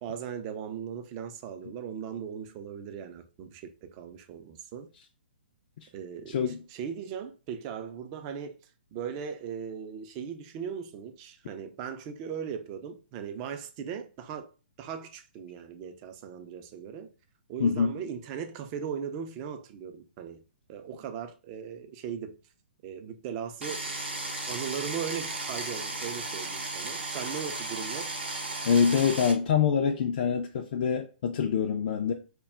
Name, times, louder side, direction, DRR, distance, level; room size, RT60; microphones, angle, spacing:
voice 1, 0.0-4.9 5.9-8.6 8.9-14.5 14.8-17.1 17.5-20.4 20.7-22.4 22.8-23.9 24.5-28.1, right 7 dB, 35° right, 0.4 m, -38 dB
voice 2, 6.3-6.6 17.6-17.9 28.6-32.1, left 7 dB, 50° left, 0.3 m, -25 dB
sound 1, 23.6-29.3, right 2 dB, 90° right, 0.7 m, -35 dB
2.2 x 2.1 x 3.4 m
figure-of-eight pair, 125°, 6 cm